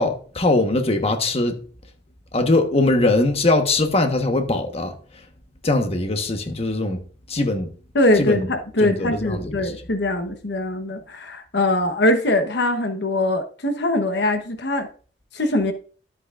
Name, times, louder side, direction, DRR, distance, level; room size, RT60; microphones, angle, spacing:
voice 1, 0.0-1.6 2.3-4.9 5.6-7.0 7.3-7.7 8.2-8.5 8.8-9.7, left 2 dB, 35° left, 1.2 m, -21 dB
voice 2, 7.9-14.9 15.3-15.7, left 1 dB, 65° left, 1.0 m, -22 dB
12.5 x 8.5 x 2.5 m
head